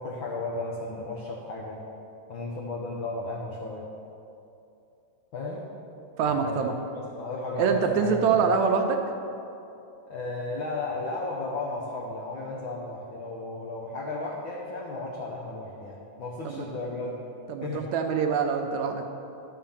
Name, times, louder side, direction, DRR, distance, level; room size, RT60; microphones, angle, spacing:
voice 1, 0.0-1.8 2.3-3.9 5.3-5.7 6.3-6.7 7.2-8.2 8.4-8.5 10.1-17.2 17.6-17.8, left 2 dB, 80° left, -1 dB, 1.1 m, -34 dB
voice 2, 6.2-6.7 7.6-9.0 16.5-16.7 17.5-19.0, right 6 dB, 75° right, 4 dB, 1.8 m, -25 dB
11.5 x 5.7 x 7.1 m, 2.8 s
omnidirectional pair, 3.6 m